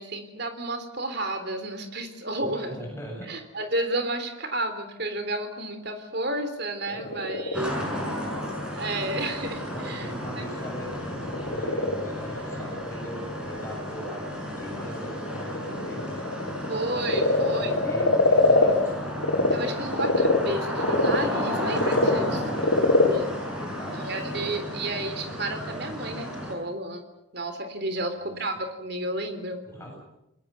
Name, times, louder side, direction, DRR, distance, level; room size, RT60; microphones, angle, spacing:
voice 1, 0.0-2.9 3.3-7.8 8.7-10.7 16.7-17.7 19.5-22.4 22.9-23.3 23.9-27.0 27.3-29.6, right 2 dB, 50° right, 8 dB, 3.6 m, -32 dB
voice 2, 2.5-3.3 6.9-7.2 7.7-8.3 9.7-16.2 17.2-19.1 22.1-22.8 23.5-25.0 27.9-28.3 29.6-30.0, equal, 10° left, 0 dB, 7.8 m, -40 dB
Frog, 6.7-19.5 19.9-24.5, left 2 dB, 75° left, 5.2 m, -26 dB
sound 1, 7.5-26.5, equal, 5° right, 6.8 m, -33 dB
29.0 x 21.0 x 6.9 m, 0.89 s
head